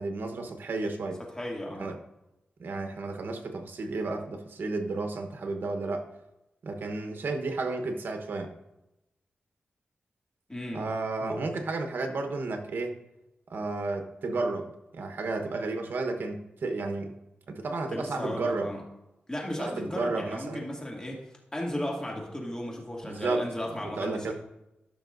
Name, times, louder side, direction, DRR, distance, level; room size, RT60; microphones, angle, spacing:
voice 1, 0.0-1.2 1.8-2.0 2.6-6.1 6.6-8.5 10.7-13.0 13.5-17.1 17.5-18.7 19.6-20.7 23.0-23.5 24.0-24.3, right 3 dB, 75° right, 5 dB, 1.0 m, -32 dB
voice 2, 1.2-1.9 10.5-10.9 11.2-11.4 17.9-18.9 19.3-21.2 21.5-24.3, left 1 dB, 20° left, -1 dB, 2.3 m, -35 dB
14.0 x 5.9 x 2.6 m, 0.93 s
wide cardioid pair, 85°, 4 cm